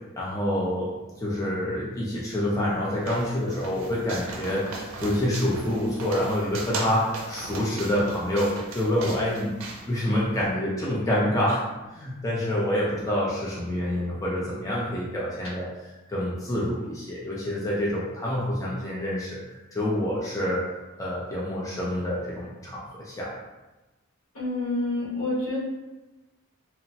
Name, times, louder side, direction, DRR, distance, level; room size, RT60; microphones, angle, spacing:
voice 1, 0.2-0.9 1.2-9.5 9.9-11.6 11.9-15.7 16.1-19.4 19.7-20.6 21.0-23.3, left 1 dB, 15° left, -6 dB, 0.4 m, -27 dB
sound 1, 2.3-10.5, right 2 dB, 65° right, 0.5 m, -38 dB
voice 2, 24.3-25.6, left 2 dB, 85° left, -7 dB, 1.2 m, -28 dB
2.9 x 2.1 x 2.7 m, 1.1 s
head